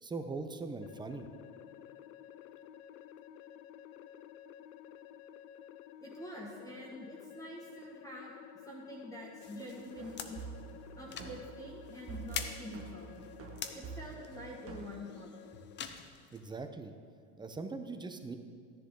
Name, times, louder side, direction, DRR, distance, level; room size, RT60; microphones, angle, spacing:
voice 1, 0.0-1.3 16.3-16.9 17.4-18.4, right 3 dB, 10° right, 7 dB, 0.7 m, -41 dB
sound 1, 0.8-15.8, left 10 dB, 65° left, 0.7 m, -53 dB
voice 2, 6.0-8.3 8.6-10.4 11.0-13.1 13.7-15.3, equal, 10° left, -3 dB, 1.8 m, -46 dB
sound 2, 9.4-16.7, left 7 dB, 25° left, 0.7 m, -47 dB
sound 3, 10.0-15.0, right 6 dB, 30° right, 1.1 m, -48 dB
13.0 x 10.5 x 3.8 m, 2.4 s
supercardioid pair, 110°, 44 cm